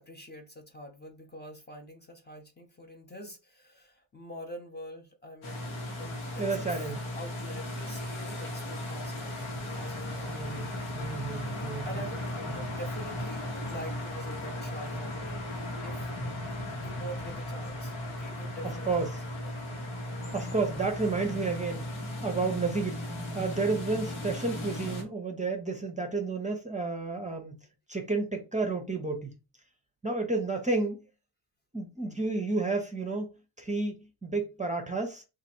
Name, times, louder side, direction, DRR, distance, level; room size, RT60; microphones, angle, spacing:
voice 1, 0.0-9.5 9.7-10.4 11.6-12.3 12.5-15.5 15.8-16.1 16.8-19.6, equal, 20° left, 0.7 m, -45 dB
sound 1, 5.4-25.0, left 1 dB, 85° left, 1.3 m, -36 dB
voice 2, 6.4-7.0 10.3-10.7 11.0-11.9 18.9-19.1 20.3-22.0 22.2-27.6 27.9-29.3 30.0-31.0 31.7-33.3 33.6-35.2, right 3 dB, 15° right, 0.7 m, -31 dB
2.9 x 2.6 x 4.3 m
cardioid pair, 115°, 48 cm